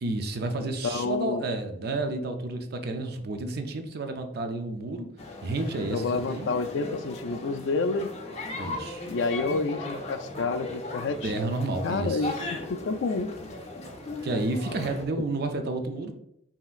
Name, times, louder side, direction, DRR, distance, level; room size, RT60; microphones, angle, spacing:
voice 1, 0.0-5.1 5.4-6.5 8.6-9.1 11.2-12.3 14.2-16.1, right 2 dB, 60° right, 6 dB, 0.5 m, -31 dB
voice 2, 0.6-1.5 5.9-8.2 9.1-11.5 11.8-12.3 12.7-13.3, left 3 dB, 85° left, 10 dB, 0.4 m, -29 dB
sound 1, 5.2-15.0, left 2 dB, 35° left, 0.8 m, -38 dB
5.5 x 2.9 x 2.4 m, 0.78 s
head